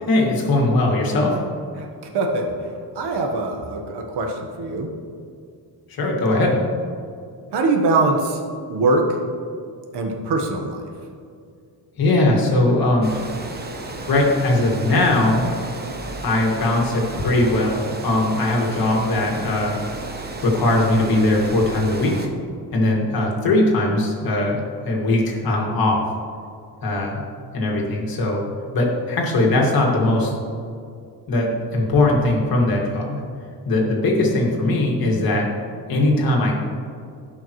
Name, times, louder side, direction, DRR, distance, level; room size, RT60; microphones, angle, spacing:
voice 1, 0.0-1.4 5.9-6.6 12.0-13.3 14.1-15.4 16.2-19.8 20.4-22.3 22.7-26.0 26.8-27.2 27.5-28.4 28.7-30.3 31.3-33.2 33.7-35.5 35.9-36.5, left 2 dB, 60° left, -1 dB, 2.2 m, -20 dB
voice 2, 1.8-2.7 2.9-4.9 7.5-8.4 8.7-9.2 9.9-10.8, right 2 dB, 75° right, 2 dB, 1.4 m, -22 dB
Water, 13.0-22.3, right 2 dB, 25° right, 0.9 m, -33 dB
16.5 x 5.7 x 3.2 m, 2.3 s
cardioid pair, 120°, 41 cm